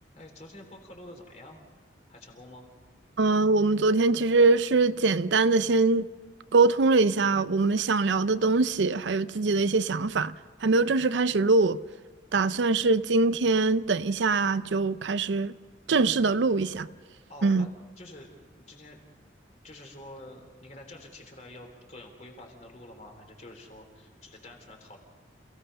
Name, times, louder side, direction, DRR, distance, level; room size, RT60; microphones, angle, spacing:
voice 1, 0.2-1.6 2.1-2.7 17.3-17.7 18.0-19.0 19.6-25.0, left 1 dB, 40° left, 3.5 m, -48 dB
voice 2, 3.2-6.1 6.5-10.3 10.6-11.8 12.3-15.5 15.9-16.9 17.4-17.7, right 3 dB, 75° right, 0.5 m, -23 dB
28.0 x 17.0 x 5.6 m
head